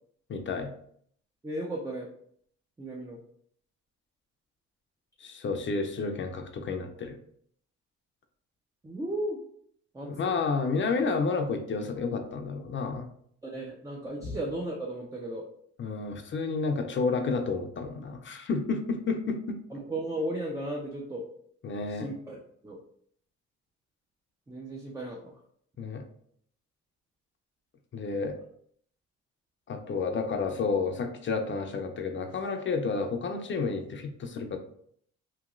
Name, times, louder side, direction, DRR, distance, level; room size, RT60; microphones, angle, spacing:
voice 1, 0.3-0.7 5.2-7.2 10.0-13.1 14.2-14.4 15.8-19.6 21.6-22.1 25.8-26.0 27.9-28.3 29.7-34.6, left 4 dB, 40° left, 5 dB, 0.5 m, -30 dB
voice 2, 1.4-2.1 2.8-3.2 8.8-9.4 9.9-10.3 13.4-15.4 19.7-21.2 21.9-22.8 24.5-25.3, right 1 dB, 10° right, -1 dB, 0.4 m, -35 dB
2.9 x 2.8 x 2.5 m, 0.65 s
cardioid pair, 90°, 30 cm